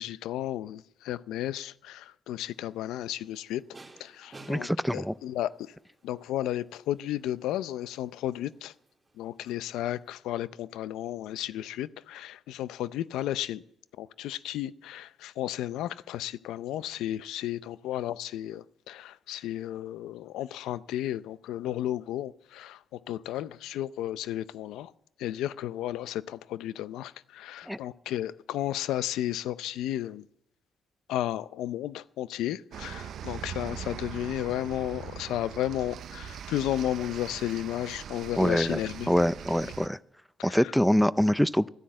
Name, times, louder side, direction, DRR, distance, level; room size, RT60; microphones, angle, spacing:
voice 1, 0.0-3.6 4.0-5.7 6.0-8.7 9.2-13.6 14.0-24.9 25.2-30.2 31.1-39.1 40.4-40.7, left 13 dB, 90° left, 0.5 m, -33 dB
sound 1, 2.4-10.2, right 2 dB, 25° right, 3.0 m, -57 dB
voice 2, 4.5-5.1 27.7-27.8 38.4-38.8 39.1-40.0 40.4-41.7, equal, ahead, 0.4 m, -24 dB
sound 2, 32.7-39.9, right 9 dB, 65° right, 0.5 m, -41 dB
14.0 x 10.0 x 7.6 m
cardioid pair, 90°, 0 cm